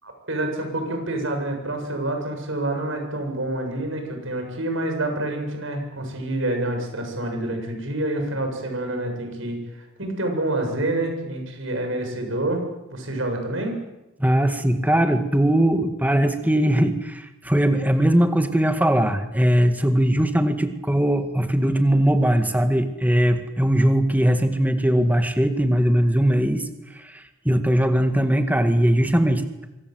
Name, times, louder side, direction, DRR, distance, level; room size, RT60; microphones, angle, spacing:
voice 1, 0.0-12.6 12.9-13.8, right 1 dB, 70° right, 4 dB, 7.6 m, -27 dB
voice 2, 14.2-26.7 26.9-29.4, right 1 dB, 10° right, 7 dB, 2.0 m, -20 dB
25.5 x 25.0 x 8.1 m, 0.95 s
head